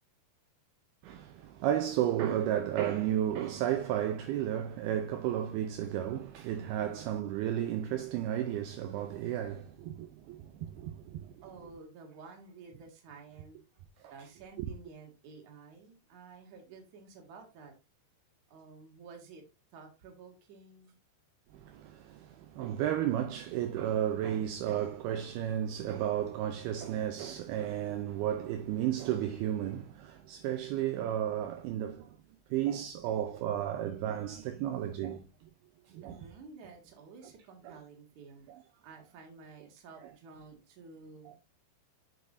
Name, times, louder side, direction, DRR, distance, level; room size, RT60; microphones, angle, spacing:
voice 1, 1.0-11.4 14.6-14.7 21.5-32.1 32.5-35.2 35.9-36.2 37.7-37.8 38.5-38.6 41.3-41.4, right 11 dB, 80° right, 2.4 m, -33 dB
voice 2, 6.8-7.2 11.4-13.8 14.1-17.7 18.5-19.4 19.7-21.0 36.0-38.5 38.8-41.4, right 4 dB, 50° right, 3.1 m, -52 dB
8.0 x 6.8 x 2.6 m
omnidirectional pair, 5.0 m